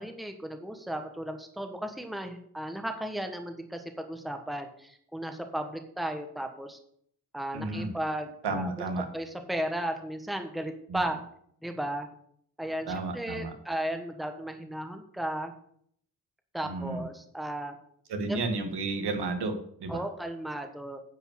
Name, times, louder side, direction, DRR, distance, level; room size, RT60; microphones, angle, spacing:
voice 1, 0.0-6.8 7.3-8.7 9.1-11.2 11.6-12.1 12.6-15.5 16.5-17.8 18.3-18.4 19.9-21.0, right 1 dB, ahead, 5 dB, 1.2 m, -35 dB
voice 2, 7.5-7.9 8.4-9.1 10.9-11.0 12.9-13.5 16.6-17.1 18.1-20.0, right 3 dB, 80° right, 6 dB, 1.9 m, -32 dB
10.0 x 5.5 x 7.6 m, 0.65 s
wide cardioid pair, 125°, 40 cm